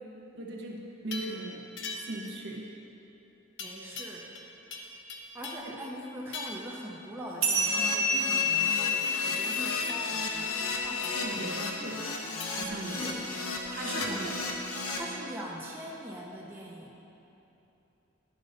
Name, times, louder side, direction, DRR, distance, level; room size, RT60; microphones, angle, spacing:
voice 1, 0.3-1.7 2.1-2.7 5.6-5.7 11.1-12.1 12.5-13.1 13.7-14.3, right 1 dB, 55° right, -1 dB, 0.9 m, -38 dB
sound 1, 1.1-1.4 1.8-2.3 3.6-4.5 4.7-5.7 6.3-6.7 8.4-10.0 11.0-11.2 12.4-12.7 14.0-14.2, left 4 dB, 55° left, 0.7 m, -41 dB
voice 2, 3.6-4.3 4.7-4.8 5.3-11.5 12.9-13.3 13.8-14.5 14.9-17.0, equal, 10° right, -4 dB, 0.6 m, -42 dB
sound 2, 7.4-12.3, left 3 dB, 80° right, 1.5 m, -30 dB
Keyboard (musical), 7.5-15.0, left 2 dB, 90° left, 0.8 m, -35 dB
11.0 x 3.9 x 5.1 m, 2.9 s
head